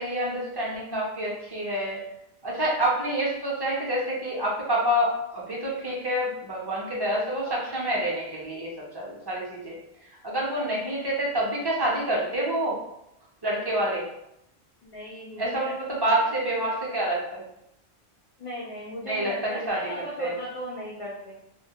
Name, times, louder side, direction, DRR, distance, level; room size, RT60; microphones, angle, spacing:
voice 1, 0.0-2.0 2.4-9.8 10.2-12.8 13.4-14.1 15.4-17.4 19.0-20.3, right 1 dB, 35° right, -4 dB, 0.4 m, -27 dB
voice 2, 14.8-15.7 16.1-16.2 18.4-21.4, left 1 dB, 65° left, -4 dB, 0.3 m, -37 dB
2.1 x 2.1 x 2.8 m, 0.80 s
omnidirectional pair, 1.1 m